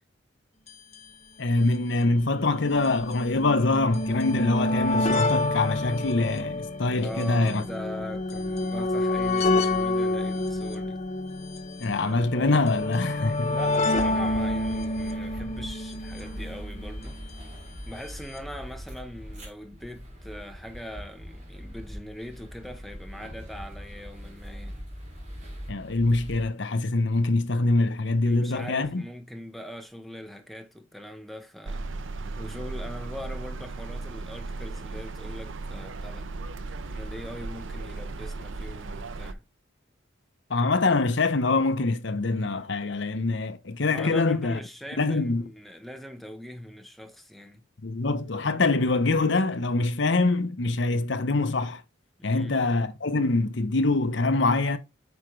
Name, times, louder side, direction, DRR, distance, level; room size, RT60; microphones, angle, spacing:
sound 1, 0.7-0.8 0.9-1.0 1.9-17.1 18.1-18.2 18.4-18.5, left 2 dB, 35° left, 0.9 m, -28 dB
voice 1, 1.4-7.6 11.8-13.5 25.7-29.0 40.5-44.6 45.0-45.4 47.8-51.8 52.2-54.8, left 3 dB, 65° left, 0.8 m, -24 dB
voice 2, 7.0-11.0 13.5-17.2 17.9-24.8 28.2-31.9 32.4-36.3 36.9-39.4 43.9-47.6 52.2-52.6, equal, ahead, 0.9 m, -41 dB
sound 2, 13.9-26.5, equal, 35° right, 3.0 m, -41 dB
sound 3, 31.7-39.3, right 3 dB, 75° right, 0.6 m, -36 dB
8.1 x 5.1 x 3.2 m
head